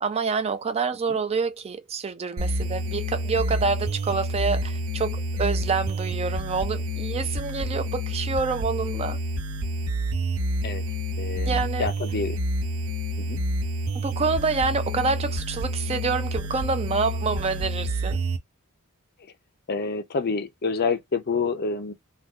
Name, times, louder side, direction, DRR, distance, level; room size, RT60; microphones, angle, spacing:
voice 1, 0.0-9.2 11.5-11.9 13.9-18.2, right 4 dB, 30° right, 0.4 m, -27 dB
sound 1, 2.4-18.4, equal, 70° right, 0.6 m, -28 dB
voice 2, 11.2-12.4 13.2-13.4 19.7-21.9, left 4 dB, 45° left, 0.5 m, -28 dB
2.6 x 2.2 x 3.5 m
head